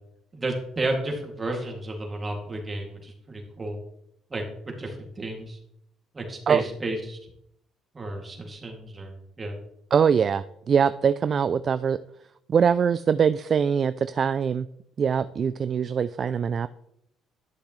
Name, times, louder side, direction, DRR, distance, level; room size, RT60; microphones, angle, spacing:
voice 1, 0.3-3.8 4.3-5.6 6.1-7.2 7.9-9.6, right 2 dB, 30° right, 2 dB, 2.4 m, -32 dB
voice 2, 9.9-12.0 12.5-14.7 15.0-16.7, right 7 dB, 45° right, 14 dB, 0.3 m, -23 dB
11.5 x 6.6 x 3.2 m, 0.75 s
supercardioid pair, 80°, 0 cm